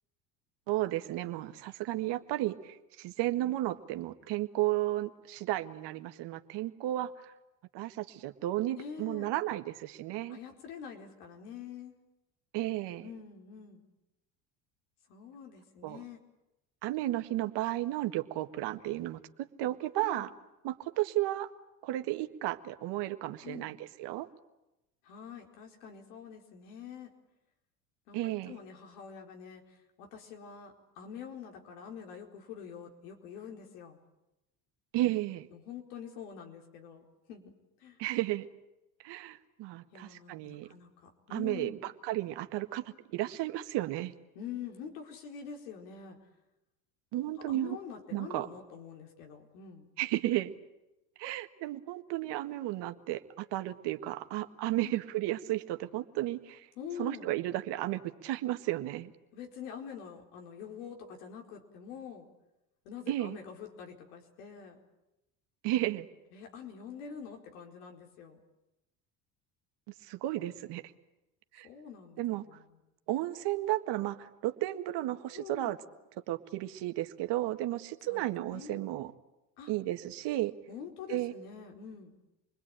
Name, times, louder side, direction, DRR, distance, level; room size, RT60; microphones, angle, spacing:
voice 1, 0.7-7.1 7.7-10.4 12.5-13.1 15.8-16.0 16.8-20.3 20.6-21.5 21.8-24.3 28.1-28.5 34.9-35.5 38.0-38.5 39.0-40.7 41.3-42.8 43.1-44.1 47.1-47.8 48.1-48.5 50.0-50.5 51.2-56.7 57.0-59.1 63.1-63.4 65.6-66.1 70.0-70.8 71.5-71.7 72.2-72.4 73.1-75.8 76.3-79.1 79.7-80.5 81.1-81.3, right 15 dB, 65° right, 8 dB, 1.8 m, -33 dB
voice 2, 8.7-9.3 10.3-11.9 13.0-13.8 15.1-16.2 20.0-20.3 23.4-23.7 25.0-27.1 28.1-34.0 35.5-37.5 37.8-38.0 39.9-41.8 44.3-46.2 47.2-49.9 54.8-54.9 56.7-57.3 59.3-62.3 62.8-64.8 66.3-68.4 71.6-72.8 75.3-75.8 78.0-78.8 79.6-79.7 80.7-82.2, left 7 dB, 80° left, 2 dB, 4.6 m, -46 dB
27.5 x 21.0 x 9.0 m, 0.96 s
supercardioid pair, 90°, 45 cm